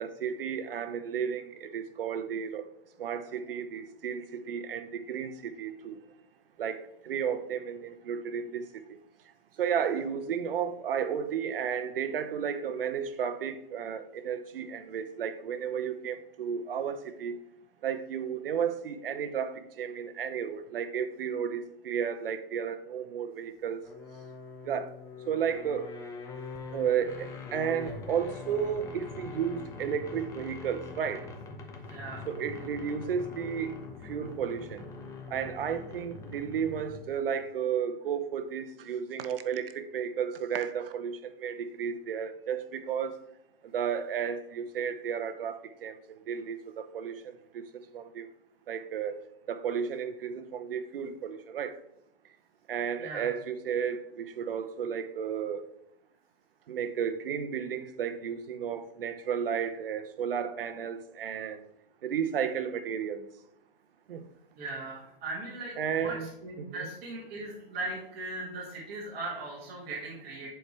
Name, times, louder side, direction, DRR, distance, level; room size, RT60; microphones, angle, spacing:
voice 1, 0.0-2.7 3.0-6.0 6.6-8.8 9.6-17.4 17.8-23.8 24.7-24.9 25.3-25.9 26.7-31.2 32.3-33.7 34.0-34.8 35.3-43.1 43.7-45.9 46.3-47.1 47.5-48.3 48.7-49.2 49.5-51.8 52.7-55.6 56.7-61.6 62.0-63.3 64.1-64.2 65.8-66.3 66.6-66.9, right 7 dB, 70° right, 0.8 m, -33 dB
sound 1, 23.8-37.2, left 3 dB, 10° left, 0.6 m, -43 dB
voice 2, 31.9-32.2 53.0-53.3 64.6-70.5, right 2 dB, 30° right, 2.0 m, -39 dB
10.0 x 4.5 x 3.2 m
hypercardioid pair, 145°, 29 cm